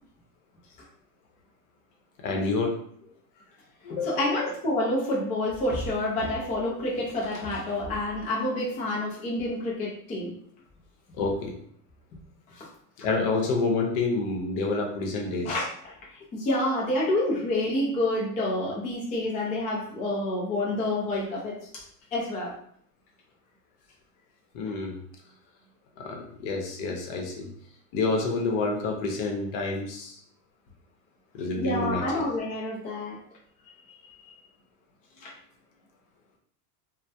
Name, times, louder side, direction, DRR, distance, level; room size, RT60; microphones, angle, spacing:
voice 1, 2.2-2.7 3.8-4.5 11.2-11.5 13.0-15.6 24.5-25.0 26.0-27.5 27.9-30.1 31.3-32.2, left 3 dB, 55° left, 1 dB, 0.8 m, -28 dB
voice 2, 3.9-10.3 12.6-12.7 15.4-15.7 16.3-21.8 22.1-22.6 31.6-33.2 35.2-35.3, left 1 dB, 20° left, -4 dB, 0.4 m, -28 dB
2.2 x 2.1 x 2.7 m, 0.62 s
supercardioid pair, 115°, 48 cm